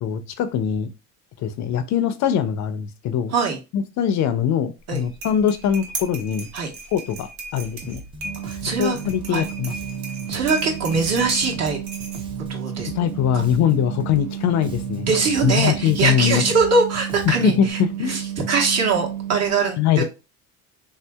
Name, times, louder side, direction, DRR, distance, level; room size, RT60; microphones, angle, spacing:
voice 1, 0.0-0.9 1.4-3.3 3.7-6.5 6.9-8.0 8.8-9.7 12.8-15.1 15.4-16.4 17.3-18.2 19.8-20.0, left 9 dB, 55° left, 12 dB, 0.5 m, -22 dB
sound 1, 4.8-12.5, right 2 dB, 90° right, 1.2 m, -37 dB
Bass guitar, 7.8-17.7, right 2 dB, 15° right, 0.5 m, -38 dB
sound 2, 8.2-19.5, right 11 dB, 65° right, 0.6 m, -32 dB
voice 2, 8.4-9.0 9.3-9.5 10.3-11.8 12.5-12.9 13.3-13.4 15.1-17.8 18.1-18.2 18.5-20.0, right 4 dB, 45° right, 1 dB, 1.1 m, -22 dB
3.6 x 2.7 x 2.2 m, 0.28 s
cardioid pair, 125°, 35 cm